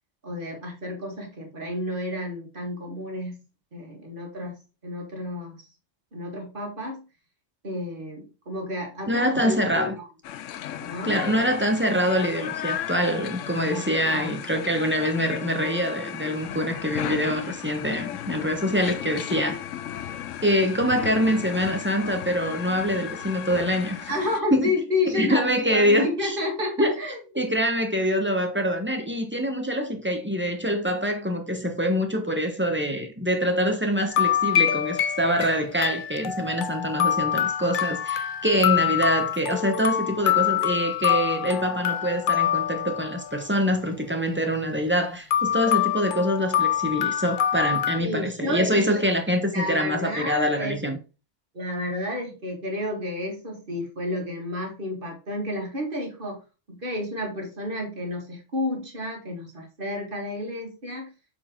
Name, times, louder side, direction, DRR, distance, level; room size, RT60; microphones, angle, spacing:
voice 1, 0.2-3.4 3.7-5.6 6.1-7.1 7.6-9.9 10.8-11.2 13.7-14.3 24.1-27.5 48.0-49.0 49.5-50.9 51.5-56.4 56.7-61.1, left 1 dB, 45° right, 2.0 m, -31 dB
voice 2, 9.1-9.9 11.0-19.6 20.4-24.1 24.5-24.7 25.1-26.4 26.8-26.9 27.3-51.0, equal, 10° right, 1.1 m, -25 dB
sound 1, 10.2-24.4, left 11 dB, 80° left, 1.0 m, -35 dB
sound 2, 34.1-43.5 45.3-48.0, left 10 dB, 60° left, 0.5 m, -25 dB
6.8 x 4.9 x 3.7 m
omnidirectional pair, 1.3 m